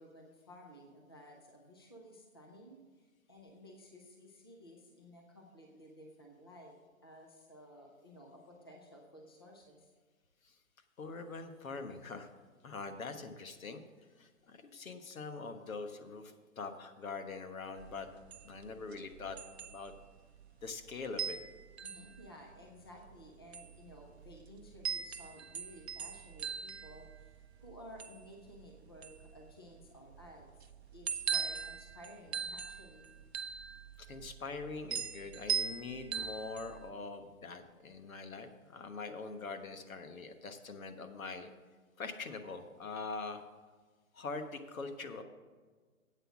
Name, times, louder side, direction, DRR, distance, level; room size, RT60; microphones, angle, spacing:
voice 1, 0.0-6.7 7.0-9.9 21.8-30.5 30.9-33.1, equal, 20° left, 0 dB, 0.5 m, -55 dB
voice 2, 11.0-12.3 12.6-13.8 14.2-18.1 18.4-19.9 20.6-21.4 34.0-41.5 42.0-43.4 44.1-45.2, left 4 dB, 75° left, 7 dB, 1.4 m, -43 dB
sound 1, 17.8-36.9, right 7 dB, 50° right, 0.5 m, -41 dB
8.2 x 7.7 x 6.0 m, 1.4 s
hypercardioid pair, 165°, 41 cm